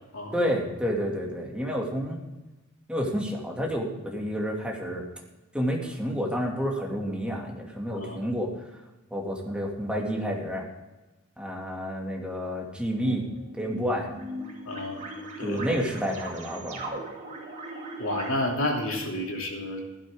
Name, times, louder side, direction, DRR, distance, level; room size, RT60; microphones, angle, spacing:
voice 1, 0.3-2.2 2.9-5.0 5.5-8.7 9.1-10.7 11.4-13.3 13.5-14.1 15.4-17.0, equal, 5° right, -1 dB, 2.5 m, -30 dB
sound 1, 13.0-18.5, right 2 dB, 35° right, 2.5 m, -38 dB
voice 2, 14.7-15.0 15.4-15.6 18.0-19.8, left 1 dB, 70° left, 0 dB, 2.9 m, -30 dB
15.5 x 12.0 x 3.8 m, 1.1 s
head